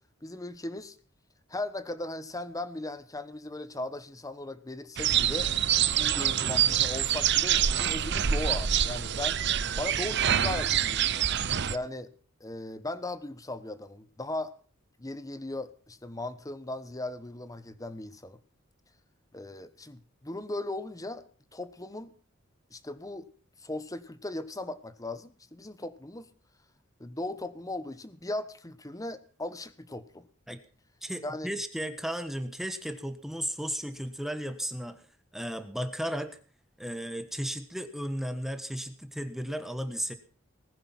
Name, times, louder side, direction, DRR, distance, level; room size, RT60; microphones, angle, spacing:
voice 1, 0.2-0.9 1.5-5.5 5.9-9.4 9.8-11.2 11.7-12.1 12.4-14.5 15.0-18.4 19.3-21.2 21.5-22.1 22.7-23.3 23.6-26.3 27.0-30.3 31.2-31.5, left 2 dB, 15° left, 12 dB, 1.1 m, -38 dB
sound 1, 5.0-11.8, right 9 dB, 55° right, 0.8 m, -26 dB
voice 2, 31.0-35.0 35.3-36.4 36.8-40.1, equal, ahead, 9 dB, 1.4 m, -34 dB
19.5 x 10.0 x 5.9 m, 0.41 s
head